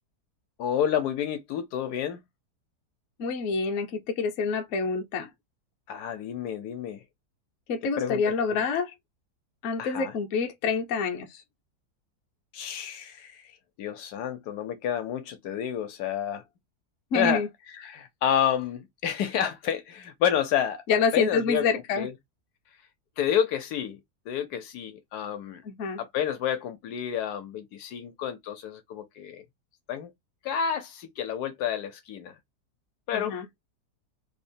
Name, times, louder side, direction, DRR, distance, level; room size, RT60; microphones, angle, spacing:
voice 1, 0.6-2.2 5.9-7.0 8.0-8.2 8.5-8.6 9.8-10.1 12.5-13.5 13.8-16.4 17.1-17.4 17.7-20.8 21.1-22.1 23.2-24.0 24.3-25.6 26.0-29.4 29.9-30.1 30.4-32.4 33.1-33.4, left 9 dB, 75° left, 1.1 m, -29 dB
voice 2, 3.2-5.3 7.7-8.9 9.6-11.4 17.1-17.5 20.9-22.1 25.6-26.0 33.1-33.5, left 5 dB, 60° left, 0.8 m, -27 dB
3.1 x 2.1 x 2.6 m
omnidirectional pair, 1.7 m